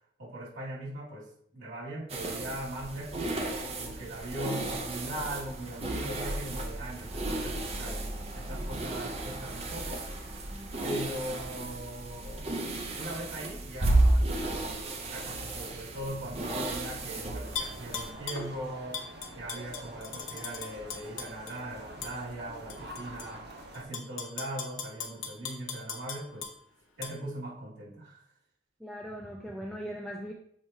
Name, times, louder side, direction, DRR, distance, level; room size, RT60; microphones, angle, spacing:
voice 1, 0.2-3.3 3.8-8.0 8.3-10.0 10.8-19.0 19.4-26.5 27.0-28.3, right 1 dB, 70° right, -7 dB, 2.5 m, -40 dB
sound 1, 2.1-18.1, right 2 dB, 30° right, 0.7 m, -33 dB
sound 2, 17.4-23.8, right 1 dB, 55° right, 1.0 m, -47 dB
Tap / Glass, 17.6-18.5 18.9-21.5 22.0-22.1 22.7-23.3 23.7-26.5 27.0-27.1, left 6 dB, 85° left, 1.0 m, -38 dB
voice 2, 28.8-30.3, equal, ahead, -1 dB, 0.4 m, -40 dB
7.0 x 2.9 x 4.6 m, 0.67 s
head